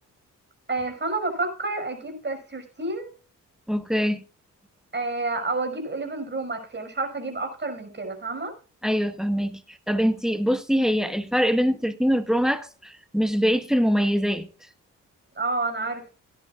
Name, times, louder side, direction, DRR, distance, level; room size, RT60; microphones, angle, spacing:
voice 1, 0.7-3.1 4.9-8.5 15.4-16.0, right 3 dB, 35° right, 5.8 m, -29 dB
voice 2, 3.7-4.2 8.8-14.5, equal, ahead, 1.4 m, -23 dB
17.0 x 10.5 x 2.5 m
cardioid pair, 70°, 33 cm